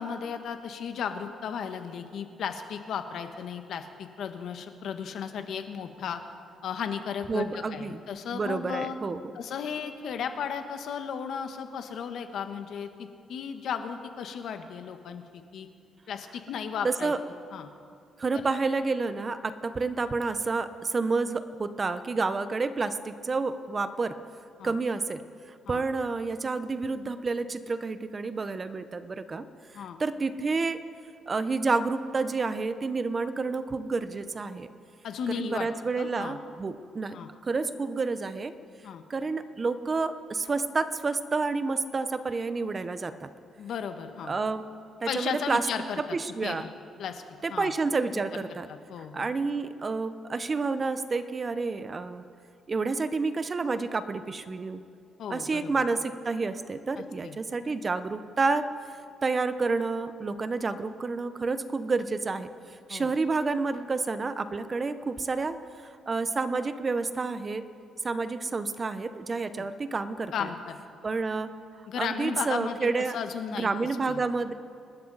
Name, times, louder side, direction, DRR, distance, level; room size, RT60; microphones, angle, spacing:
voice 1, 0.0-6.2 6.6-9.0 9.3-15.7 16.1-17.1 17.5-17.7 18.3-18.4 24.6-24.7 25.7-25.8 29.7-30.0 35.0-35.7 36.0-36.4 37.1-37.3 38.8-39.0 43.6-44.4 45.1-46.2 46.4-46.7 47.0-47.7 48.7-49.3 55.2-55.7 57.0-57.3 62.9-63.1 69.6-69.7 70.3-70.8 71.9-73.7 74.0-74.2, left 7 dB, 70° left, 7 dB, 1.3 m, -35 dB
voice 2, 7.3-8.0 8.3-9.2 16.8-17.2 18.2-24.2 24.6-25.2 25.5-29.5 29.7-30.8 31.3-34.7 35.3-37.2 37.4-38.5 39.1-43.3 44.3-44.6 45.0-45.7 46.1-46.7 47.4-48.7 49.1-52.2 52.7-54.8 55.3-58.6 59.2-62.5 62.9-65.6 66.1-67.6 68.0-70.5 71.0-71.5 72.0-73.2 73.5-74.5, right 4 dB, 35° right, 11 dB, 0.9 m, -29 dB
27.0 x 13.0 x 4.1 m, 2.4 s
cardioid pair, 90°, 0 cm